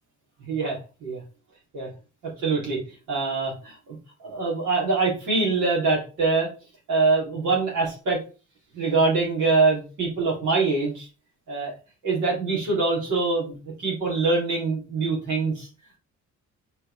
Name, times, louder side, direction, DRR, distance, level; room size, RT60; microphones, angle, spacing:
voice 1, 0.4-1.2 1.7-1.9 2.4-2.8 3.1-6.5 6.9-8.2 8.7-11.1 11.5-11.7 12.0-15.7, right 3 dB, 90° right, -3 dB, 3.7 m, -24 dB
5.4 x 4.6 x 4.3 m, 0.34 s
cardioid pair, 90°, 30 cm